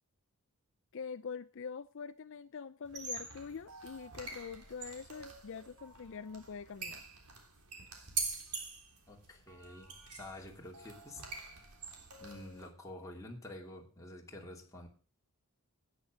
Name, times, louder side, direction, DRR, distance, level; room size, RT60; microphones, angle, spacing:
voice 1, 0.9-7.0, left 6 dB, 60° left, 0.5 m, -44 dB
sound 1, 2.8-12.7, right 4 dB, 90° right, 3.4 m, -45 dB
voice 2, 9.1-11.3 12.2-14.9, left 1 dB, 15° left, 3.0 m, -49 dB
10.5 x 9.6 x 6.3 m
head